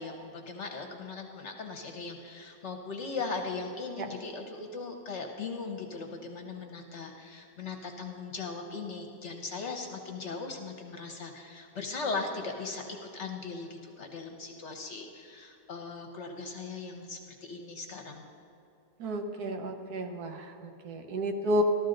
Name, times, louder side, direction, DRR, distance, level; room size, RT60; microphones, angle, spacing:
voice 1, 0.0-18.2, left 4 dB, 50° left, 4 dB, 1.0 m, -39 dB
voice 2, 19.0-21.6, equal, 70° right, 5 dB, 1.4 m, -32 dB
14.0 x 13.0 x 3.8 m, 2.7 s
omnidirectional pair, 1.8 m